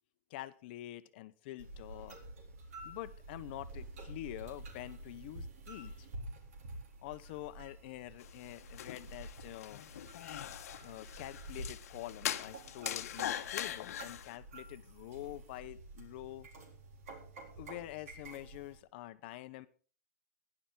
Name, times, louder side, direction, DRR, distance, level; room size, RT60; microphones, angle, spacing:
voice 1, 0.3-2.2 2.8-6.1 7.0-9.8 10.8-16.5 17.5-19.7, left 16 dB, 40° left, 13 dB, 0.8 m, -46 dB
sound 1, 1.6-18.8, right 2 dB, 65° right, 4.1 m, -49 dB
sound 2, 8.2-14.4, left 11 dB, 70° left, 1.0 m, -42 dB
16.0 x 11.0 x 3.8 m, 0.39 s
supercardioid pair, 170°, 9 cm